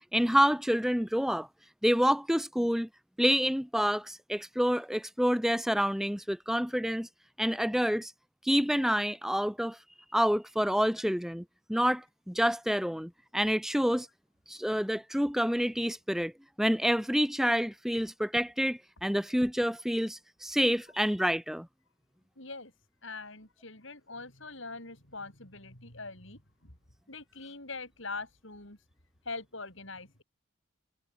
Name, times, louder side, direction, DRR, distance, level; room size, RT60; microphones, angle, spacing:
voice 1, 0.1-1.5 1.8-2.9 3.2-7.1 7.4-8.1 8.4-9.8 10.1-14.1 14.5-16.3 16.6-21.7, equal, ahead, 2.4 m, -28 dB
voice 2, 22.4-22.7 23.0-26.8 27.1-28.8 29.2-30.2, left 3 dB, 60° left, 6.6 m, -43 dB
head